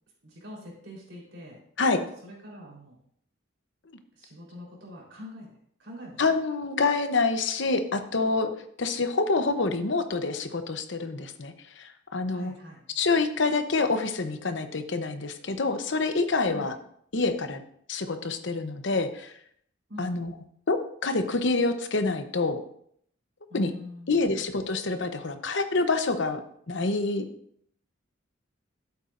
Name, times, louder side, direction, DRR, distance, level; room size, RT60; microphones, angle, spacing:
voice 1, 0.2-1.6 2.0-3.0 4.1-5.5 5.8-6.2 12.3-12.8 16.5-16.7 19.9-20.2 23.5-24.4, left 1 dB, 75° right, -3 dB, 4.0 m, -44 dB
voice 2, 6.2-8.5 8.8-12.5 13.0-16.8 17.1-17.6 17.9-19.3 20.0-20.3 20.7-22.6 23.5-23.7 24.1-26.4 26.7-27.2, left 3 dB, 70° left, 8 dB, 0.9 m, -27 dB
12.0 x 8.3 x 2.6 m, 0.67 s
head